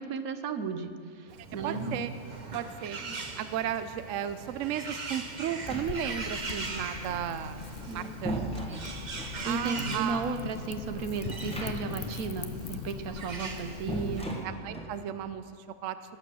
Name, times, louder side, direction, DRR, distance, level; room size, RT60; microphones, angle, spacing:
voice 1, 0.0-1.8 3.0-3.2 7.9-8.2 9.4-14.3, right 5 dB, 85° right, 9 dB, 1.3 m, -35 dB
Bird, 1.3-14.2, right 3 dB, 35° right, 1.0 m, -40 dB
voice 2, 1.6-2.1 2.5-3.0 3.4-7.6 7.9-8.8 9.4-10.4 14.4-15.4 15.8-16.0, right 10 dB, 70° right, 12 dB, 0.9 m, -34 dB
sound 1, 5.5-6.3 7.6-9.4 11.3-12.1 12.3-12.4 13.9-15.0, right 1 dB, 5° left, 1.5 m, -37 dB
Wind / Fire, 5.7-14.2, left 6 dB, 55° left, 0.7 m, -41 dB
19.0 x 9.3 x 6.2 m, 2.2 s
omnidirectional pair, 1.5 m